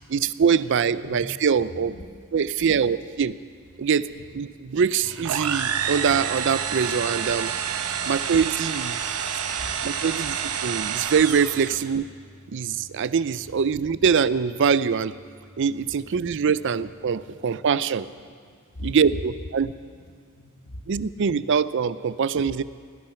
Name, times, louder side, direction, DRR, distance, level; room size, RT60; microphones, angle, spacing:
voice 1, 0.0-1.9 2.3-3.4 3.8-4.1 4.3-7.5 8.1-9.0 9.8-12.1 12.5-15.1 15.6-18.1 18.8-19.7 20.9-22.6, right 6 dB, 55° right, 16 dB, 0.4 m, -23 dB
voice 2, 3.8-4.2 4.7-4.8 5.8-5.9 7.8-8.0 9.1-10.2 10.6-10.7 12.7-13.0 16.1-16.2 17.3-17.8 18.4-19.0 20.1-21.5 22.1-22.2 22.4-22.5, left 1 dB, 90° left, 4 dB, 1.5 m, -44 dB
sound 1, 5.0-17.3, equal, 20° right, 4.8 m, -48 dB
sound 2, 5.2-11.9, right 8 dB, 85° right, 0.8 m, -28 dB
17.5 x 13.0 x 5.8 m, 2.1 s
head